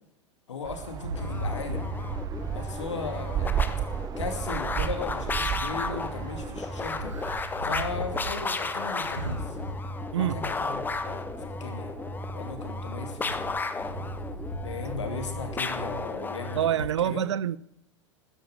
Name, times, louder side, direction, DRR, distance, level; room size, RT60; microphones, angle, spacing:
voice 1, 0.5-1.9 2.5-3.8 4.2-7.1 7.6-9.6 10.2-11.9 12.3-13.6 14.6-17.2, left 4 dB, 70° left, 2.7 m, -37 dB
sound 1, 0.6-7.4, right 11 dB, 25° right, 0.5 m, -34 dB
sound 2, 0.9-2.5 6.9-16.2 16.8-16.9, right 1 dB, 85° right, 1.6 m, -38 dB
sound 3, 1.1-16.8, left 3 dB, 10° left, 1.0 m, -34 dB
voice 2, 16.5-17.6, right 10 dB, 65° right, 0.7 m, -26 dB
13.5 x 10.0 x 8.3 m
figure-of-eight pair, 90°, 16 cm